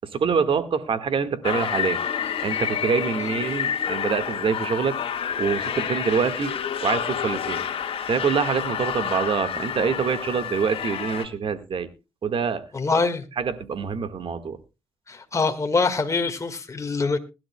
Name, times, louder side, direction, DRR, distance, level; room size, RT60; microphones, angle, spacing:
voice 1, 0.0-2.0 2.4-7.6 8.1-11.9 12.2-13.0 13.4-14.6, right 6 dB, 55° right, 11 dB, 1.8 m, -25 dB
sound 1, 1.4-11.3, left 8 dB, 60° left, 1.8 m, -29 dB
voice 2, 12.7-13.2 15.1-17.2, left 4 dB, 30° left, 6 dB, 1.8 m, -24 dB
21.0 x 12.0 x 2.3 m, 0.27 s
supercardioid pair, 60°, 11 cm